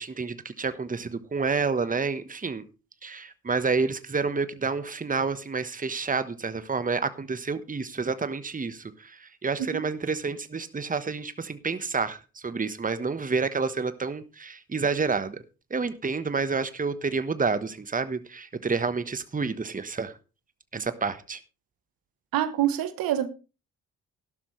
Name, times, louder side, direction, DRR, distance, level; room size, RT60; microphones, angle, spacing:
voice 1, 0.0-2.6 3.0-15.4 15.7-20.1 20.7-21.4, right 4 dB, 20° right, 1.2 m, -29 dB
voice 2, 22.3-23.3, right 12 dB, 65° right, 1.2 m, -26 dB
13.5 x 12.0 x 3.2 m
hypercardioid pair, 45°, 37 cm